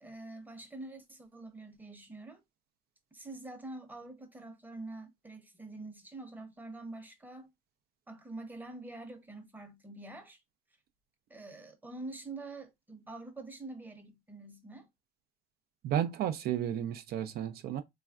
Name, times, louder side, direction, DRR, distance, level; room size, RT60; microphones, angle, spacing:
voice 1, 0.0-2.4 3.1-7.5 8.1-10.4 11.3-14.9, right 2 dB, 10° right, 0.8 m, -46 dB
voice 2, 15.8-17.8, right 10 dB, 65° right, 0.4 m, -32 dB
3.2 x 2.4 x 2.2 m
cardioid pair, 110°, 17 cm